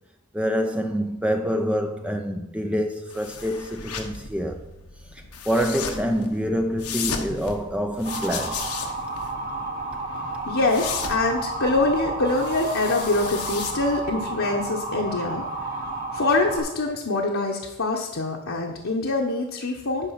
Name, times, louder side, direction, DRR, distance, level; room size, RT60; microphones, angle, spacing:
voice 1, 0.3-4.6 5.1-8.7, equal, 5° right, 0.4 m, -26 dB
sound 1, 3.1-14.2, left 6 dB, 85° left, 1.1 m, -36 dB
Motor vehicle (road) / Siren, 8.1-16.6, right 2 dB, 40° right, 2.3 m, -31 dB
voice 2, 9.4-15.4 16.1-20.1, left 2 dB, 60° left, 1.0 m, -25 dB
10.0 x 5.5 x 5.7 m
head